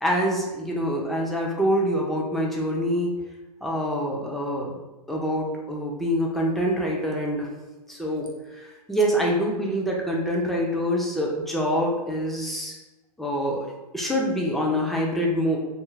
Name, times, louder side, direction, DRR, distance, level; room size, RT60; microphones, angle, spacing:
voice 1, 0.0-3.1 3.6-4.7 5.1-7.5 7.9-12.8 13.2-15.6, equal, ahead, -2 dB, 0.4 m, -25 dB
2.4 x 2.4 x 3.1 m, 1.1 s
hypercardioid pair, 125°, 19 cm